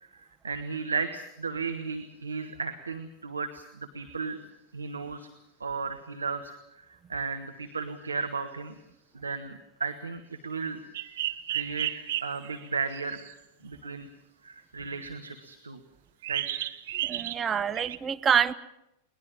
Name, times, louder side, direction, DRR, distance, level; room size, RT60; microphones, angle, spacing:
voice 1, 0.1-4.4 4.7-5.3 5.6-8.7 9.1-10.8 11.5-11.9 12.2-13.2 13.6-14.1 14.4-15.8 16.3-16.4, right 4 dB, 75° right, 7 dB, 1.3 m, -34 dB
sound 1, 10.9-13.3 16.2-17.4 17.7-18.0, right 13 dB, 55° right, 1.0 m, -33 dB
voice 2, 17.0-18.5, right 7 dB, 20° right, 11 dB, 0.8 m, -26 dB
22.0 x 19.5 x 7.3 m, 0.88 s
figure-of-eight pair, 90°, 0 cm